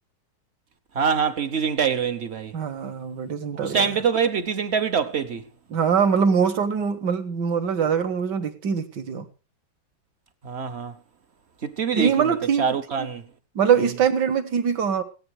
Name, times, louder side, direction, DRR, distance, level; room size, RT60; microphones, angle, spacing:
voice 1, 0.9-2.5 3.5-5.4 10.4-10.9 11.6-13.2, right 6 dB, 50° right, 0.8 m, -25 dB
voice 2, 2.5-4.0 5.7-9.3 12.0-13.1 13.6-15.0, right 7 dB, 70° right, 1.8 m, -23 dB
16.0 x 10.5 x 4.7 m
omnidirectional pair, 2.0 m